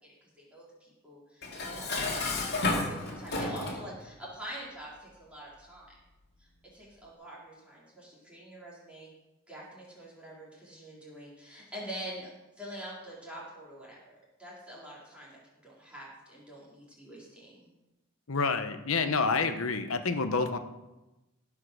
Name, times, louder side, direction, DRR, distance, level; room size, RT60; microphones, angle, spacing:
voice 1, 0.0-5.9 6.4-9.1 9.5-12.3 12.6-17.7, right 1 dB, 5° right, -7 dB, 3.9 m, -45 dB
Dishes pots and pans, 1.4-3.9, left 2 dB, 50° left, 2.3 m, -31 dB
voice 2, 18.3-20.6, left 4 dB, 70° left, 9 dB, 0.9 m, -28 dB
17.0 x 5.7 x 6.4 m, 1.0 s
head